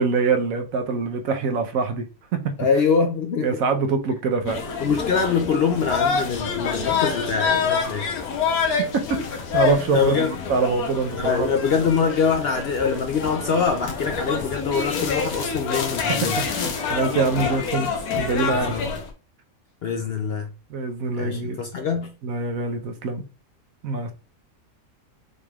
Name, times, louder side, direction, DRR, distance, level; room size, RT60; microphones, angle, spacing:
voice 1, 0.0-2.0 2.3-2.6 3.4-4.6 8.9-11.5 11.7-11.9 16.1-17.9 18.2-18.8 20.7-21.6 22.2-23.2 23.8-24.1, right 4 dB, 70° right, 1.2 m, -24 dB
voice 2, 2.6-3.6 4.8-8.1 9.9-10.3 11.2-16.4 18.5-18.9 19.8-20.5 21.2-22.1, left 5 dB, 60° left, 0.7 m, -24 dB
sound 1, 4.5-19.1, left 5 dB, 90° left, 1.4 m, -27 dB
6.3 x 3.3 x 2.4 m
omnidirectional pair, 1.5 m